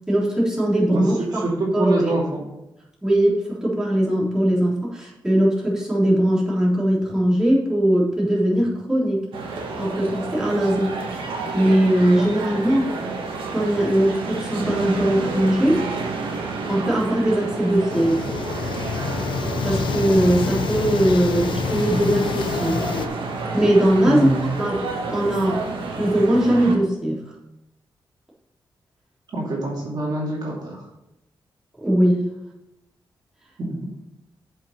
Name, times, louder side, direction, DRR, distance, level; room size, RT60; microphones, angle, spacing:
voice 1, 0.1-1.4 1.7-2.0 3.0-9.2 9.8-10.9 11.5-12.9 13.5-15.8 16.7-18.8 19.6-22.8 23.5-24.3 24.6-24.8 25.1-25.7 26.0-27.2 31.8-32.2, right 1 dB, 5° right, -7 dB, 3.5 m, -20 dB
voice 2, 0.9-2.4 24.0-24.5 29.3-30.8 33.6-33.9, right 2 dB, 55° right, -3 dB, 2.5 m, -24 dB
sound 1, 9.3-26.7, right 3 dB, 90° right, 1.7 m, -30 dB
sound 2, 17.9-23.1, left 5 dB, 80° left, 0.8 m, -27 dB
7.7 x 5.8 x 5.8 m, 0.90 s
cardioid pair, 95°, 8 cm